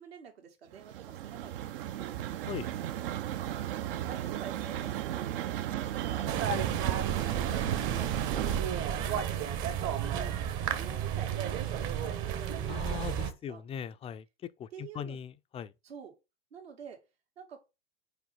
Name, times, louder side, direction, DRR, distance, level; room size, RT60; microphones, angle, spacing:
voice 1, 0.0-2.2 3.4-3.6 4.0-13.6 14.7-15.2 15.8-16.1 16.5-17.0 17.4-17.6, right 7 dB, 75° right, 2.5 m, -48 dB
sound 1, 0.7-8.6, right 12 dB, 60° right, 0.7 m, -34 dB
sound 2, 6.3-13.3, right 8 dB, 40° right, 1.2 m, -32 dB
voice 2, 12.7-14.2 14.6-15.7, left 8 dB, 20° left, 0.4 m, -40 dB
5.1 x 4.5 x 5.5 m
hypercardioid pair, 95°, 31 cm